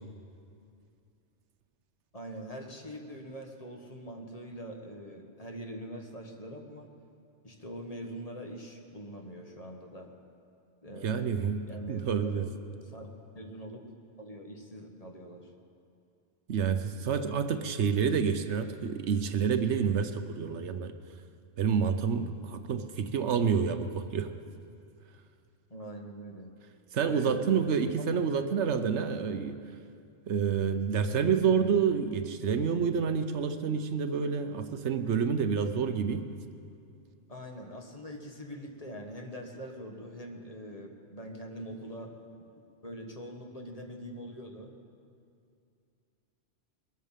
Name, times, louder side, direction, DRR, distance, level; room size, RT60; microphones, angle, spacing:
voice 1, 2.1-6.9 7.4-10.1 10.8-11.2 11.7-12.5 12.8-13.8 14.2-15.5 25.7-26.5 27.0-27.4 28.0-28.2 37.3-42.1 42.8-44.8, equal, 30° left, 2 dB, 1.4 m, -43 dB
voice 2, 11.0-12.5 16.5-20.9 21.6-24.3 26.9-29.6 30.3-36.3, right 6 dB, 70° right, 9 dB, 1.0 m, -28 dB
21.5 x 8.2 x 7.4 m, 2.5 s
omnidirectional pair, 1.2 m